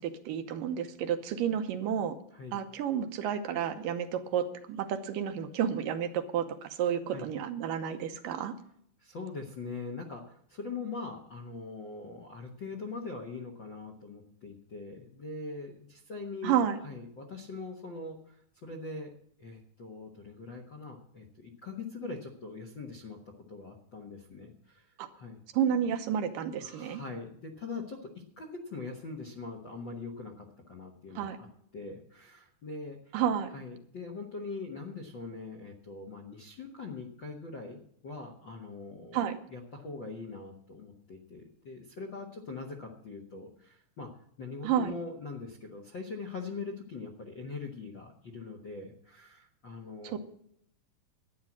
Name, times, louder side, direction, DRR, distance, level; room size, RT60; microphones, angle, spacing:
voice 1, 0.0-2.2 2.5-8.5 16.4-16.8 25.0-25.1 25.5-27.0 31.2-31.4 33.1-33.5 39.1-39.4 44.6-44.9 50.0-50.2, right 9 dB, 75° right, 7 dB, 2.5 m, -31 dB
voice 2, 9.0-16.6 16.8-19.1 19.4-23.2 23.5-25.4 26.6-28.1 28.4-31.5 31.7-33.1 33.5-39.2 39.5-44.1 44.4-50.2, left 3 dB, 55° left, 3 dB, 1.3 m, -42 dB
12.0 x 9.5 x 7.4 m, 0.67 s
omnidirectional pair, 4.1 m